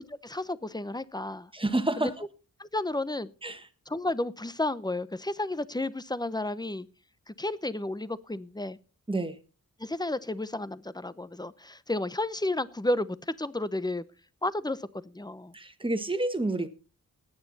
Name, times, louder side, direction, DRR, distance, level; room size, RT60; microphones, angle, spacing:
voice 1, 0.0-1.5 2.0-2.1 2.6-3.3 3.9-6.9 7.3-8.8 9.8-14.0 14.4-14.9 15.1-15.5, left 2 dB, 10° left, 0.7 m, -32 dB
voice 2, 1.5-2.1 3.4-3.7 9.1-9.4 15.5-16.7, right 2 dB, 15° right, 1.5 m, -29 dB
17.5 x 9.4 x 4.1 m
wide cardioid pair, 105°, 35 cm